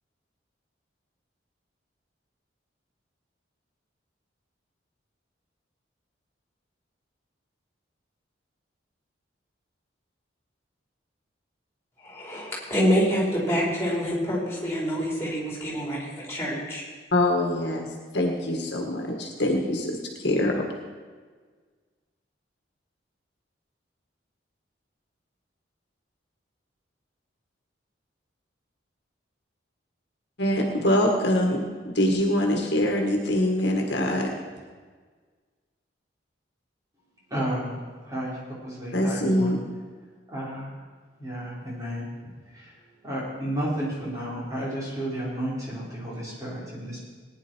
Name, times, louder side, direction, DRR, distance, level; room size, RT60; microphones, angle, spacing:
voice 1, 12.0-16.8, equal, 15° left, -5 dB, 4.7 m, -26 dB
voice 2, 17.1-17.9 18.1-20.7 30.4-31.6 31.9-34.3 38.9-39.6, left 1 dB, 60° left, 1 dB, 1.8 m, -24 dB
voice 3, 37.3-37.8 38.0-39.6 40.3-40.7 41.2-42.0 42.4-42.8 43.0-47.0, equal, 15° right, -6 dB, 4.0 m, -32 dB
19.0 x 10.5 x 4.6 m, 1.5 s
head